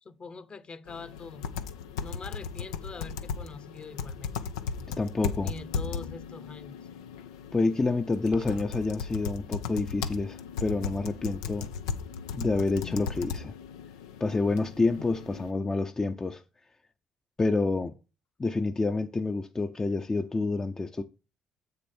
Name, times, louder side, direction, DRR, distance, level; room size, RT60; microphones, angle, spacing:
voice 1, 0.0-1.6 2.0-4.3 5.4-6.8, left 4 dB, 40° left, 1.0 m, -43 dB
sound 1, 0.9-15.5, left 6 dB, 85° left, 0.6 m, -37 dB
voice 2, 5.0-5.5 7.5-11.7 12.3-13.5 14.2-16.4 17.4-17.9 18.4-21.0, left 3 dB, 25° left, 0.7 m, -28 dB
sound 2, 8.3-8.8, right 5 dB, 50° right, 1.0 m, -48 dB
7.7 x 6.7 x 4.3 m
hypercardioid pair, 50°, 3 cm